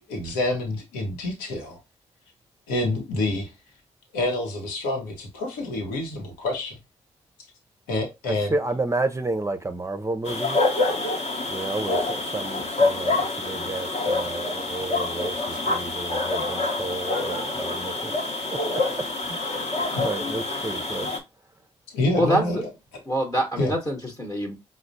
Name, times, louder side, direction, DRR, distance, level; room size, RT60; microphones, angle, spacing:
voice 1, 0.1-1.8 2.7-3.5 4.1-6.8 7.9-8.5 15.5-15.6 19.9-20.4 20.7-20.8 21.9-23.0 23.6-23.7, left 2 dB, 85° left, 0.8 m, -28 dB
voice 2, 8.3-10.6 11.5-18.1 19.2-19.5 20.0-21.1, right 2 dB, 20° right, 0.5 m, -31 dB
sound 1, 10.2-21.2, left 2 dB, 50° left, 0.9 m, -26 dB
voice 3, 23.1-24.6, right 1 dB, 25° left, 0.9 m, -25 dB
4.8 x 2.0 x 2.6 m
hypercardioid pair, 45°, 14 cm